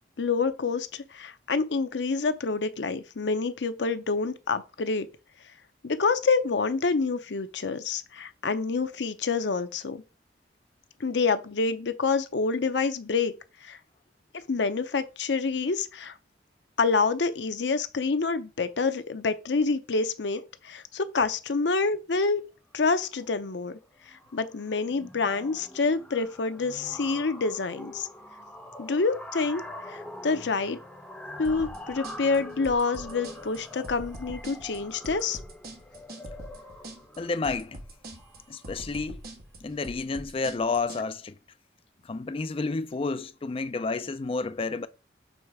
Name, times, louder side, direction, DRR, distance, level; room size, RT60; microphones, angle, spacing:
voice 1, 0.2-5.1 5.8-10.0 11.0-13.3 13.6-13.8 14.5-16.2 16.8-22.4 22.7-23.8 24.1-28.1 28.8-29.6 29.9-30.8 31.4-35.4, left 4 dB, 75° left, 0.7 m, -27 dB
sound 1, 23.0-23.3 23.6-23.8 24.1-39.0, left 1 dB, 5° left, 0.8 m, -44 dB
sound 2, 31.4-41.0, right 1 dB, 55° right, 1.4 m, -43 dB
voice 2, 37.2-37.8 38.5-39.2 39.6-41.4 42.0-44.9, left 3 dB, 30° left, 0.4 m, -30 dB
6.4 x 3.2 x 4.7 m
head